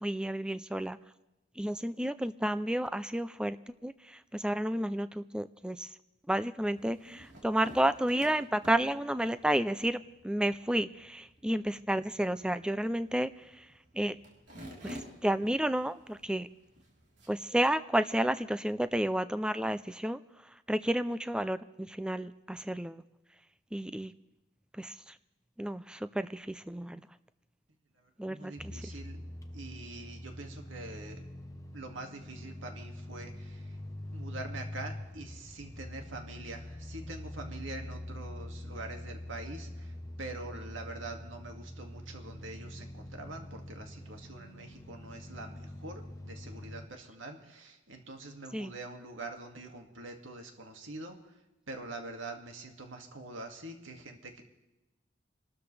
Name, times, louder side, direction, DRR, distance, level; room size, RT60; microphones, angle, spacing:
voice 1, 0.0-1.0 1.6-3.6 3.8-5.9 6.3-13.3 13.9-14.2 14.8-16.5 17.3-20.2 20.7-23.0 23.7-24.1 24.8-24.9 25.6-27.0 28.2-28.5 48.5-48.7, right 1 dB, 5° right, 13 dB, 0.4 m, -31 dB
sound 1, 6.6-17.7, equal, 60° right, 3.7 m, -52 dB
voice 2, 28.3-29.2 29.5-31.3 31.7-33.8 34.1-51.3 51.7-54.4, right 2 dB, 80° right, 3 dB, 2.2 m, -45 dB
sound 2, 28.6-46.9, left 1 dB, 15° left, 0.9 m, -44 dB
26.0 x 13.0 x 3.3 m, 1.0 s
head